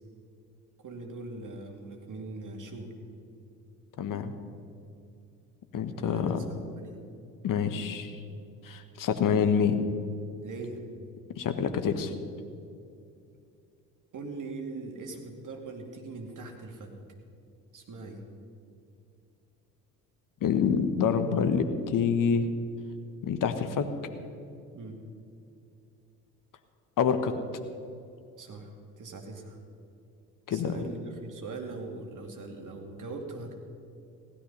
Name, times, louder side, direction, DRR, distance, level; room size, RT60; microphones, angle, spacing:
voice 1, 0.8-2.9 6.0-7.0 10.4-10.8 14.1-16.9 17.7-18.2 24.7-25.0 28.4-28.7 29.0-29.6 30.5-33.5, right 3 dB, 40° right, 2 dB, 2.4 m, -41 dB
voice 2, 4.0-4.3 5.7-6.4 7.4-8.2 8.6-9.8 11.3-12.1 20.4-22.5 23.2-23.9 27.0-27.3 30.5-30.8, left 7 dB, 40° left, 9 dB, 1.3 m, -26 dB
16.0 x 12.0 x 5.5 m, 2.5 s
figure-of-eight pair, 50°, 47 cm